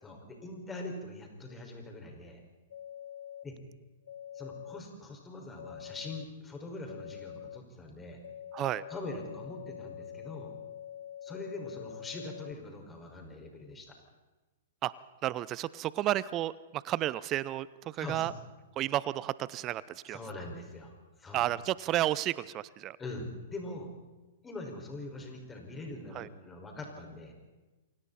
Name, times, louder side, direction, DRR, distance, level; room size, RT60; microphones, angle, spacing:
voice 1, 0.0-2.4 3.4-3.6 4.3-8.2 8.9-10.5 11.2-13.9 18.0-18.3 20.1-21.4 23.0-23.9 24.4-27.3, left 2 dB, 15° left, 2 dB, 5.6 m, -43 dB
sound 1, 2.7-3.4 4.0-4.8 5.6-6.2 6.9-7.6 8.2-12.5, left 10 dB, 65° left, 0.7 m, -45 dB
voice 2, 8.5-8.8 14.8-14.9 15.2-18.3 18.8-20.2 21.3-23.0 26.1-26.3, right 14 dB, 30° right, 19 dB, 0.7 m, -32 dB
28.5 x 24.5 x 4.3 m, 1.2 s
hypercardioid pair, 115°, 0 cm